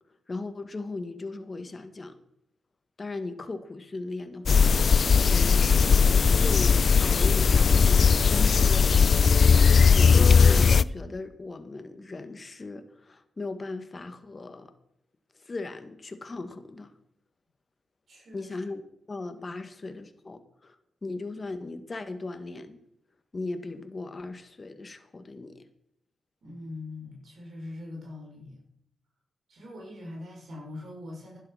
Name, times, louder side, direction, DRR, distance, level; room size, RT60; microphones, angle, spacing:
voice 1, 0.3-2.2 3.0-5.7 6.3-8.9 9.9-14.7 15.4-16.9 18.3-18.8 19.1-20.8 21.0-22.8 23.3-25.7, left 3 dB, 40° left, 9 dB, 1.9 m, -38 dB
sound 1, 4.5-10.8, left 5 dB, 55° left, 0.4 m, -19 dB
voice 2, 18.1-18.6 19.6-19.7 26.4-28.6 29.5-31.4, left 2 dB, 65° right, -2 dB, 6.3 m, -42 dB
11.5 x 10.5 x 6.0 m, 0.73 s
supercardioid pair, 50°, 0 cm